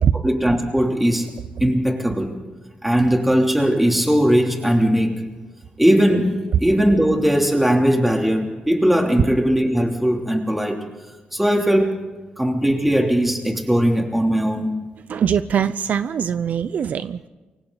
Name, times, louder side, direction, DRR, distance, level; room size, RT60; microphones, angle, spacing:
voice 1, 0.2-1.3 1.6-2.3 2.8-5.2 5.8-6.3 6.6-10.8 11.3-12.1 12.4-14.7, equal, 5° right, 1 dB, 3.1 m, -19 dB
voice 2, 15.1-17.3, right 8 dB, 60° right, 13 dB, 0.6 m, -22 dB
29.0 x 24.0 x 4.0 m, 1.2 s
wide cardioid pair, 125°, 3 cm